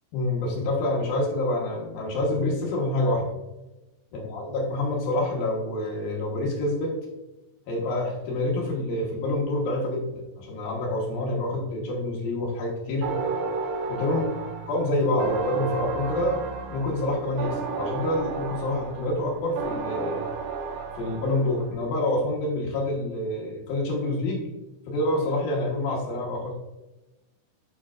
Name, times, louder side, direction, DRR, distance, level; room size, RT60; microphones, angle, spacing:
voice 1, 0.1-3.3 4.1-7.0 7.7-13.1 13.9-14.2 14.7-16.4 16.7-20.2 20.9-24.4 24.9-26.6, left 1 dB, 70° left, -2 dB, 2.3 m, -27 dB
sound 1, 13.0-21.7, right 4 dB, 75° right, 2.7 m, -32 dB
9.6 x 5.4 x 2.4 m, 1.0 s
omnidirectional pair, 5.5 m